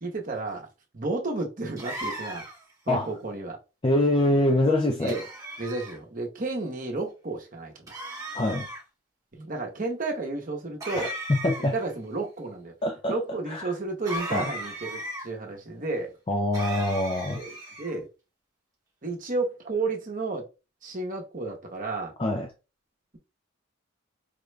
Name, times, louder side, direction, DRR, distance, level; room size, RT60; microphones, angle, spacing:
voice 1, 0.0-0.7 0.9-2.5 2.9-3.6 5.0-5.2 5.6-7.9 9.4-11.1 11.6-12.7 13.1-16.2 17.3-17.5 17.8-18.1 19.0-20.4 20.8-22.1, right 3 dB, 40° right, 0.9 m, -32 dB
sound 1, 1.8-2.7 5.1-6.0 7.9-8.8 10.8-11.9 14.0-15.2 16.5-17.9, right 1 dB, 15° right, 1.0 m, -36 dB
voice 2, 3.8-5.2 8.3-8.7 11.0-11.8 12.8-13.2 13.5-13.7 14.3-14.5 16.3-17.4 22.2-22.5, left 1 dB, 25° left, 0.4 m, -24 dB
5.0 x 2.2 x 3.2 m
head